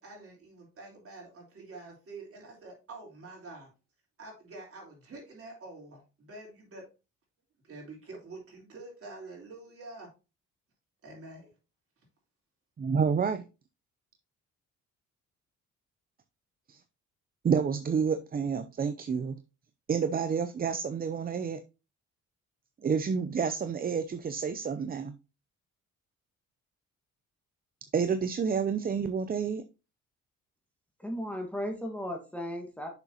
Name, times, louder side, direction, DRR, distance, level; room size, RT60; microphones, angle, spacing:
voice 1, 0.0-3.7 4.2-6.8 7.6-10.1 11.0-11.5, right 2 dB, 50° right, -1 dB, 3.7 m, -47 dB
voice 2, 12.8-13.4 16.7-16.8 17.4-19.4 19.9-21.6 22.8-25.1 27.9-29.6, right 6 dB, 30° right, 10 dB, 0.5 m, -29 dB
voice 3, 31.0-32.9, equal, 5° left, 2 dB, 1.5 m, -35 dB
6.7 x 6.1 x 2.8 m, 0.29 s
cardioid pair, 90°, 30 cm